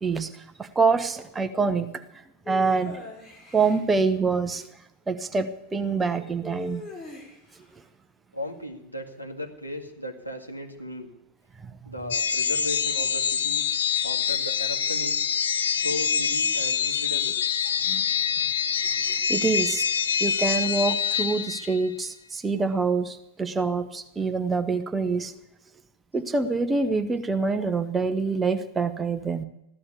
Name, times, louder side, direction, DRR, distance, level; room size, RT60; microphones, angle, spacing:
voice 1, 0.0-1.9 2.5-3.0 3.5-4.7 5.1-6.8 11.6-11.8 17.9-18.0 19.1-19.9 20.2-25.3 26.1-29.4, right 4 dB, 15° right, 8 dB, 1.1 m, -26 dB
sound 1, 2.5-3.8 6.4-7.6, left 3 dB, 15° left, 3.8 m, -39 dB
voice 2, 8.3-11.1 11.9-13.6 14.0-15.3 15.7-17.4, left 1 dB, 85° left, 1 dB, 1.9 m, -36 dB
sound 2, 12.1-21.9, left 7 dB, 65° left, 0.9 m, -25 dB
14.5 x 11.5 x 8.4 m, 0.92 s
figure-of-eight pair, 90°, 0 cm